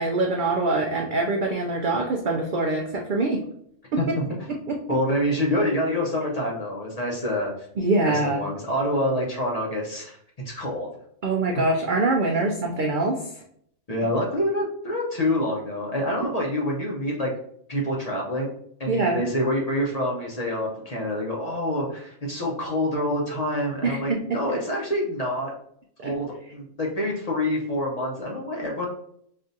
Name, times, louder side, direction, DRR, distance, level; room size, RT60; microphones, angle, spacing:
voice 1, 0.0-3.4 3.9-4.0 4.5-4.8 7.8-8.4 11.2-13.2 18.9-19.2 23.8-24.4 26.0-26.1, right 2 dB, 65° right, 1 dB, 0.4 m, -24 dB
voice 2, 4.9-7.5 8.0-10.1 10.4-10.9 13.9-17.3 17.7-18.5 18.8-25.5 26.0-28.9, left 1 dB, 35° left, -2 dB, 0.7 m, -26 dB
5.3 x 2.4 x 2.6 m, 0.68 s
omnidirectional pair, 1.3 m